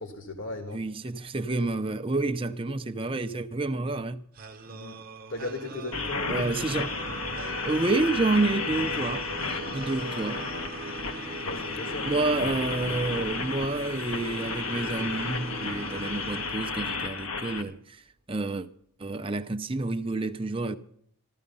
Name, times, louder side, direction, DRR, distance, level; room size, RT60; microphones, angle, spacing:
voice 1, 0.0-0.8 4.7-5.0 5.3-6.4 11.4-12.1, left 2 dB, 65° left, 1.7 m, -37 dB
voice 2, 0.7-4.2 6.3-6.9 7.6-9.3 9.7-10.5 12.1-18.7 19.0-20.8, right 2 dB, 25° right, 0.6 m, -29 dB
sound 1, 4.3-17.3, right 3 dB, 40° right, 1.1 m, -41 dB
sound 2, 5.9-17.6, left 4 dB, 80° left, 1.4 m, -33 dB
15.0 x 13.0 x 5.4 m
head